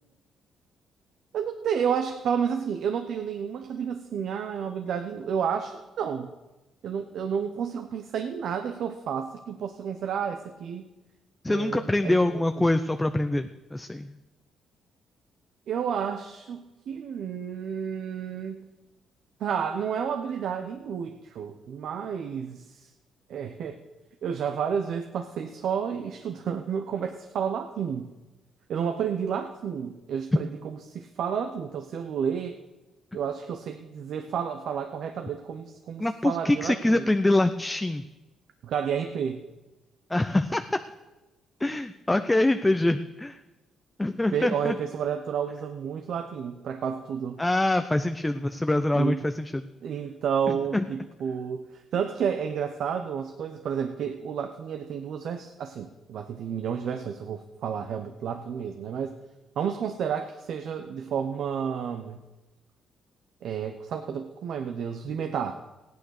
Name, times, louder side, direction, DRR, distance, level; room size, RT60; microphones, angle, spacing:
voice 1, 1.3-6.3 6.8-10.9 11.5-12.6 15.7-18.7 19.4-22.9 23.3-23.8 24.2-28.1 28.7-32.6 33.1-37.1 38.6-39.4 44.3-47.4 48.9-49.2 49.8-59.1 59.6-62.2 63.4-65.6, right 7 dB, 70° right, 7 dB, 0.9 m, -31 dB
voice 2, 11.4-14.2 36.0-38.0 40.1-40.8 41.6-43.4 44.0-44.8 47.4-49.7 50.5-50.8, left 2 dB, 10° left, 8 dB, 0.6 m, -25 dB
15.5 x 9.5 x 6.6 m, 1.1 s
cardioid pair, 90°, 0 cm